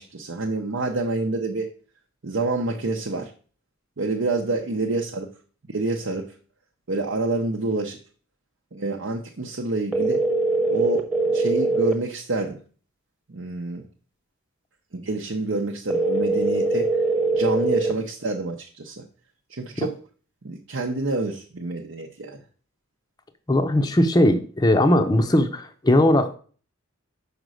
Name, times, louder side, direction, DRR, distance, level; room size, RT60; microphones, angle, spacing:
voice 1, 0.0-1.7 2.2-3.3 4.0-5.3 5.7-6.3 6.9-8.0 8.7-10.2 10.7-12.6 13.3-13.9 14.9-17.0 17.3-19.0 19.5-20.0 20.4-22.4, right 2 dB, 65° right, 1 dB, 0.7 m, -28 dB
sound 1, 9.9-11.9 15.9-17.9, right 3 dB, 5° right, 0.9 m, -22 dB
voice 2, 23.5-26.4, left 1 dB, 20° left, 5 dB, 0.6 m, -19 dB
5.3 x 5.1 x 6.3 m, 0.41 s
head